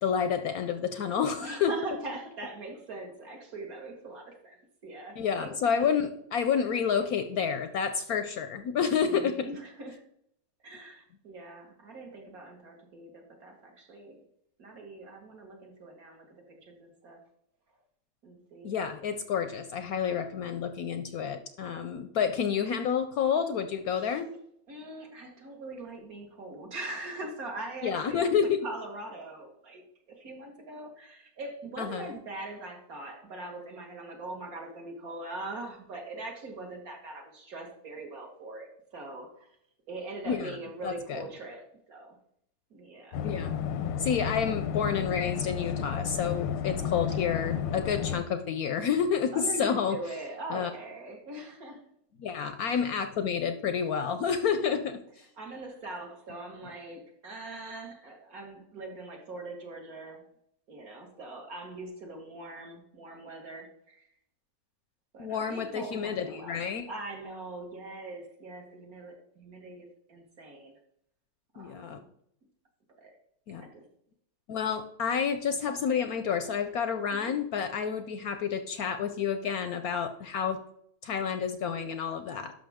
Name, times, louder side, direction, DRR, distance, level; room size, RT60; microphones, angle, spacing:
voice 1, 0.0-1.7 5.2-9.5 18.6-24.3 27.8-28.6 31.8-32.2 40.3-40.6 40.8-41.2 43.2-43.7 44.0-50.0 50.5-50.7 52.2-55.0 65.2-66.8 71.6-72.0 73.5-73.6 74.5-80.6 81.0-82.5, left 7 dB, 65° left, 8 dB, 1.0 m, -29 dB
voice 2, 1.4-5.9 6.4-6.7 9.0-10.0 10.6-14.2 14.6-17.2 18.2-18.7 24.0-24.2 24.7-28.3 28.6-29.8 30.1-39.3 39.9-42.2 42.7-43.2 49.3-51.9 55.1-60.2 60.7-64.0 65.1-70.7 71.5-72.0 73.0-73.1 73.5-73.8 77.1-77.4, right 2 dB, 55° right, 1 dB, 2.0 m, -42 dB
sound 1, 43.1-48.2, left 8 dB, 85° left, 1.4 m, -32 dB
11.5 x 5.9 x 3.5 m, 0.71 s
omnidirectional pair, 1.9 m